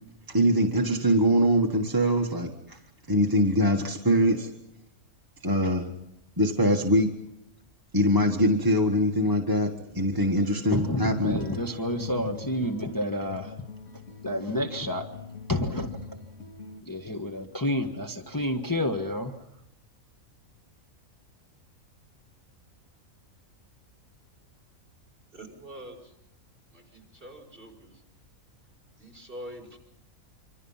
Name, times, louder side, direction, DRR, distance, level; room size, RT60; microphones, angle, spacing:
voice 1, 0.3-2.8 3.1-4.5 5.4-5.9 6.4-7.1 7.9-11.4, equal, 15° right, 1 dB, 1.5 m, -23 dB
voice 2, 10.0-13.7 13.9-15.1 15.5-16.0 16.8-19.4, left 1 dB, 15° left, 2 dB, 1.5 m, -30 dB
sound 1, 10.7-16.8, left 4 dB, 60° left, 2.3 m, -42 dB
voice 3, 25.3-26.0 26.7-27.9 29.0-29.8, equal, 35° right, 1 dB, 5.6 m, -44 dB
26.5 x 26.0 x 5.7 m, 0.79 s
omnidirectional pair, 1.5 m